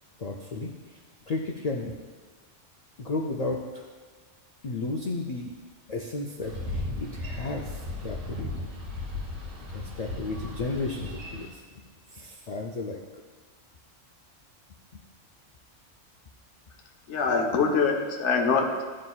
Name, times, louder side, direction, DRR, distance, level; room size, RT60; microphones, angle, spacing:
voice 1, 0.2-1.0 1.3-2.0 3.0-3.8 4.6-5.5 5.9-8.6 9.7-11.6 12.1-13.0, left 2 dB, 90° left, 0 dB, 0.3 m, -33 dB
Boat Water vehicle, 6.4-11.5, left 2 dB, 80° right, 2.0 m, -36 dB
voice 2, 17.1-18.8, left 5 dB, 70° left, 3 dB, 1.0 m, -24 dB
11.0 x 3.8 x 2.3 m, 1.4 s
omnidirectional pair, 1.3 m